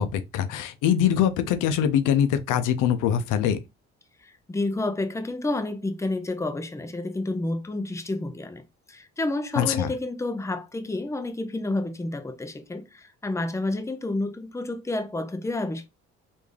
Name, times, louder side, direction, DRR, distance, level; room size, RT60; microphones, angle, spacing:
voice 1, 0.0-3.6 9.6-9.9, left 9 dB, 90° left, 0.5 m, -23 dB
voice 2, 4.2-8.6 8.9-15.9, left 2 dB, 10° left, 0.6 m, -30 dB
3.4 x 2.6 x 3.2 m
cardioid pair, 90°, 30 cm